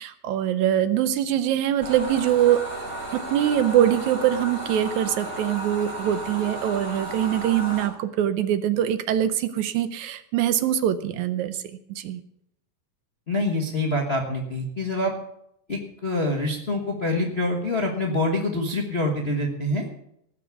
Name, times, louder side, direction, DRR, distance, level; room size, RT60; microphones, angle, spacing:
voice 1, 0.0-2.6 3.1-11.6 11.9-12.2, right 11 dB, 75° right, 12 dB, 1.9 m, -23 dB
sound 1, 1.8-7.9, right 1 dB, 30° right, 3.7 m, -34 dB
voice 2, 13.3-15.1 15.7-19.9, left 1 dB, 40° left, 1 dB, 0.9 m, -26 dB
18.0 x 6.0 x 8.2 m, 0.76 s
omnidirectional pair, 3.6 m